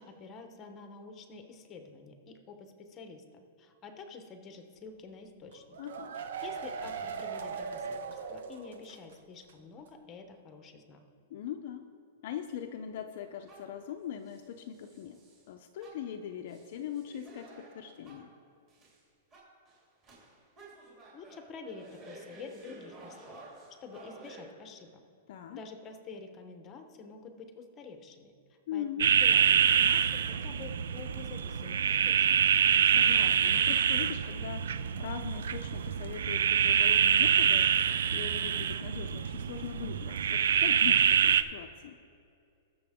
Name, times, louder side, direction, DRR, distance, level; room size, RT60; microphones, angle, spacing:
voice 1, 0.0-5.8 6.2-11.0 21.1-23.4 23.7-24.9 25.5-28.3 28.7-32.5, left 4 dB, 15° left, 6 dB, 0.9 m, -48 dB
sound 1, 5.5-9.1 9.4-9.5 9.9-10.0, right 5 dB, 70° right, 0.9 m, -39 dB
voice 2, 5.8-6.2 11.3-11.8 12.2-15.2 15.5-18.3 25.3-25.6 28.7-29.1 32.8-42.0, left 9 dB, 45° left, 5 dB, 0.6 m, -41 dB
sound 2, 13.2-13.8 14.2-15.5 15.8-18.3 18.7-19.0 19.3-24.4, right 2 dB, 20° right, 3.0 m, -52 dB
sound 3, 29.0-41.4, right 8 dB, 90° right, 0.5 m, -26 dB
20.0 x 6.9 x 3.6 m, 2.5 s
supercardioid pair, 175°, 0 cm